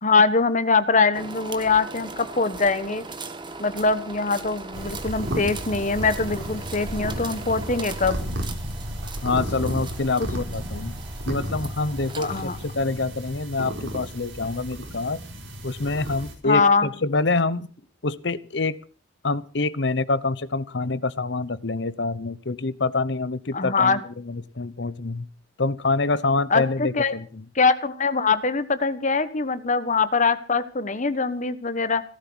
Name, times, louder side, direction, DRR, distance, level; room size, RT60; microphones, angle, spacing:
voice 1, 0.0-3.0 3.6-8.2 10.2-10.3 12.2-12.6 16.4-16.9 23.5-24.0 26.5-27.1 27.5-32.0, left 4 dB, 40° left, 13 dB, 1.2 m, -22 dB
sound 1, 1.1-12.8, right 3 dB, 25° right, 1.8 m, -39 dB
sound 2, 4.7-16.3, equal, 75° right, 4.9 m, -33 dB
voice 2, 9.2-10.9 11.3-15.2 15.6-17.7 18.0-18.8 19.2-24.0 24.3-25.3 25.6-27.4, left 3 dB, 65° left, 17 dB, 0.9 m, -26 dB
18.0 x 12.0 x 6.2 m, 0.39 s
head